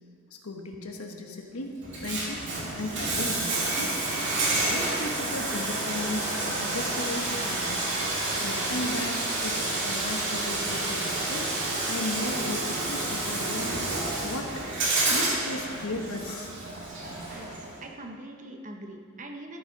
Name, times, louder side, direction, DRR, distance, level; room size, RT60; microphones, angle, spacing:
voice 1, 0.3-2.5 2.7-4.0 4.5-11.6 11.8-13.8 14.2-14.8 15.1-16.5, left 2 dB, 85° left, 3 dB, 1.3 m, -36 dB
Bathtub (filling or washing), 1.8-17.8, right 2 dB, 55° right, 2.7 m, -29 dB
voice 2, 17.8-19.6, right 1 dB, 35° right, 2 dB, 1.0 m, -42 dB
13.5 x 7.2 x 5.3 m, 2.1 s
head